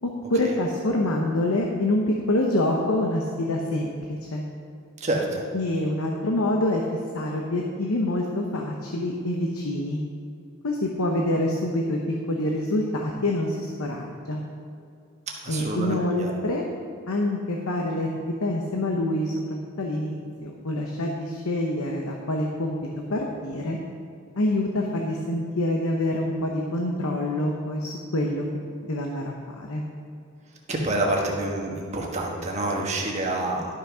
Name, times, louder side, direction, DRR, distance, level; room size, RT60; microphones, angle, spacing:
voice 1, 0.0-4.4 5.5-6.8 7.1-10.0 10.6-14.5 15.5-16.6 17.1-20.2 20.4-23.8 24.4-28.4 28.8-29.8, left 1 dB, 85° left, 0 dB, 0.9 m, -26 dB
voice 2, 5.0-5.4 15.4-16.3 30.7-33.7, right 2 dB, 30° right, -1 dB, 1.3 m, -27 dB
12.0 x 5.8 x 5.0 m, 2.4 s
head